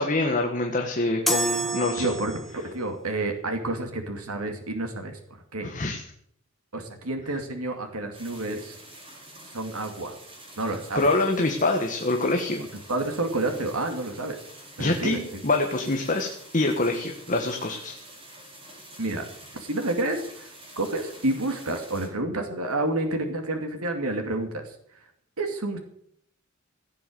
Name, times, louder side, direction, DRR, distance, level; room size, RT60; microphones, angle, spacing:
voice 1, 0.0-2.1 5.6-6.0 10.9-12.6 14.8-15.2 15.4-17.9, left 2 dB, 35° left, 3 dB, 1.5 m, -25 dB
sound 1, 1.3-2.8, right 2 dB, ahead, 1.4 m, -28 dB
voice 2, 2.0-5.2 5.5-5.7 6.7-8.8 9.5-10.2 10.6-11.1 12.9-14.4 14.8-15.4 19.0-19.2 19.6-20.5 20.8-24.7 25.4-25.8, right 2 dB, 80° right, 5 dB, 2.5 m, -29 dB
sound 2, 8.1-22.1, right 1 dB, 25° right, 4.5 m, -47 dB
16.5 x 8.0 x 7.8 m, 0.66 s
head